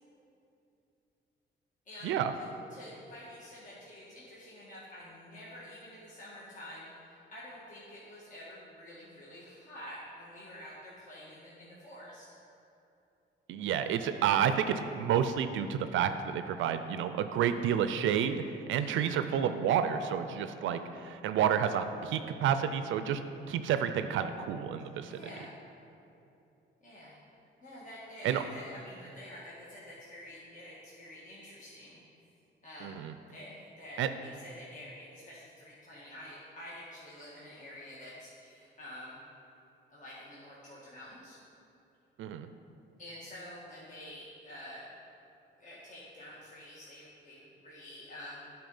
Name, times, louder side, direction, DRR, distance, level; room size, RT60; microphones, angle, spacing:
voice 1, 1.8-12.2 18.7-19.2 25.1-25.5 26.8-27.2 27.6-32.0 32.6-33.0 33.3-39.2 39.9-41.4 43.0-44.9 45.6-48.4, left 1 dB, 40° left, -7 dB, 1.6 m, -48 dB
voice 2, 13.5-18.4 18.7-23.2 23.5-25.2 28.2-28.4 32.8-33.1 34.0-34.1 42.2-42.5, right 8 dB, 75° right, 10 dB, 0.4 m, -30 dB
9.3 x 4.4 x 5.4 m, 2.8 s
cardioid pair, 90°, 20 cm